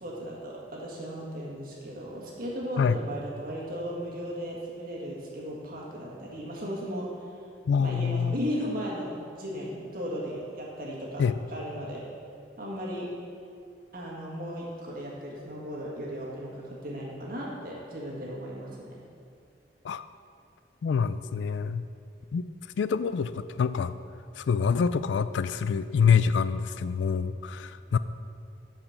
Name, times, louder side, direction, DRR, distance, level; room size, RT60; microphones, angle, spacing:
voice 1, 0.0-7.1 7.8-12.0 12.6-13.1 13.9-18.9, equal, 55° right, -4 dB, 1.7 m, -36 dB
voice 2, 7.7-8.3 11.2-11.3 19.8-20.0 20.8-21.8 22.3-22.4 22.8-23.9 24.4-28.0, left 6 dB, 90° left, 14 dB, 0.3 m, -26 dB
8.7 x 5.1 x 6.4 m, 2.3 s
head